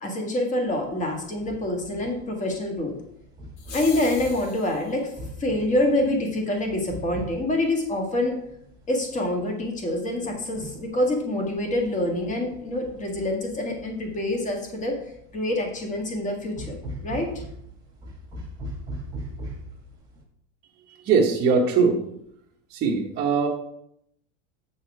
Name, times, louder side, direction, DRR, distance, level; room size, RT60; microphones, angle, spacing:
voice 1, 0.0-2.9 3.7-5.1 5.4-8.4 8.9-15.0 15.3-16.8 17.0-17.3, left 1 dB, 20° left, 2 dB, 1.7 m, -26 dB
sound 1, 0.7-20.2, equal, 10° right, 1.6 m, -42 dB
sound 2, 3.6-4.9, left 4 dB, 70° left, 2.3 m, -40 dB
voice 2, 21.0-22.0 22.7-23.5, right 5 dB, 25° right, -5 dB, 1.1 m, -21 dB
7.8 x 6.4 x 4.8 m, 0.73 s
supercardioid pair, 160°, 37 cm